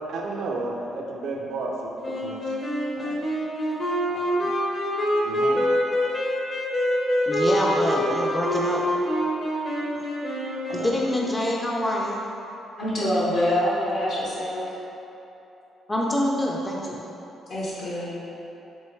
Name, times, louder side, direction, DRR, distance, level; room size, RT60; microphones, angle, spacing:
voice 1, 0.1-1.9 2.2-2.4 3.0-3.2 4.1-4.5 5.2-5.7 10.7-10.9, right 3 dB, 80° right, -1 dB, 0.5 m, -32 dB
Wind instrument woodwind instrument, 2.0-11.5, equal, 40° left, 0.8 m, -26 dB
voice 2, 7.3-8.8 10.0-10.1 10.7-12.2 15.9-17.0, left 1 dB, 15° left, -3 dB, 0.4 m, -26 dB
voice 3, 12.8-14.7 17.5-18.1, left 1 dB, 65° left, -8 dB, 1.0 m, -25 dB
4.5 x 3.0 x 3.1 m, 3.0 s
cardioid pair, 90°, 0 cm